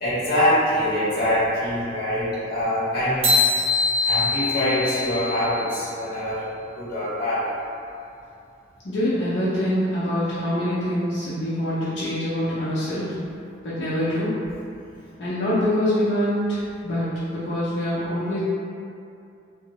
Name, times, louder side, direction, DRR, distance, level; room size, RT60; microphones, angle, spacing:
voice 1, 0.0-3.3 4.0-6.4 6.8-7.5, left 1 dB, 55° left, -10 dB, 0.9 m, -24 dB
sound 1, 3.2-5.9, left 3 dB, 35° right, 0.5 m, -23 dB
voice 2, 8.8-13.1 13.6-14.3 15.2-18.4, equal, 80° left, -12 dB, 0.7 m, -25 dB
2.7 x 2.0 x 3.0 m, 2.5 s
head